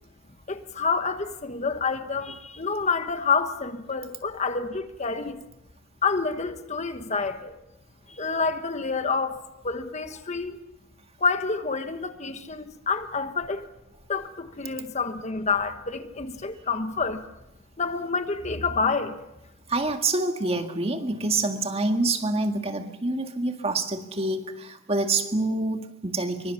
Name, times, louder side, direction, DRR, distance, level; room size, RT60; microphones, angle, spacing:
voice 1, 0.5-5.4 6.0-7.6 8.1-10.6 11.2-13.7 14.1-17.2 17.8-19.2, left 4 dB, 35° left, 1.2 m, -28 dB
voice 2, 19.7-26.5, right 2 dB, 30° right, 1.9 m, -27 dB
25.5 x 24.0 x 7.1 m
head